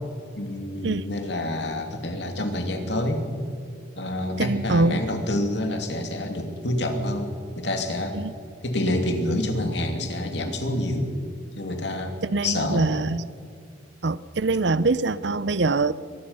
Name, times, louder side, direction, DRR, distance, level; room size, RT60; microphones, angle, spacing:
voice 1, 0.3-3.2 4.0-8.2 8.6-11.1 11.6-12.2 12.4-13.0, left 1 dB, 65° left, 5 dB, 2.7 m, -27 dB
voice 2, 4.4-5.0 8.2-8.3 12.3-13.2 14.0-15.9, right 3 dB, 65° right, 17 dB, 0.7 m, -23 dB
24.0 x 20.0 x 5.6 m, 2.4 s
head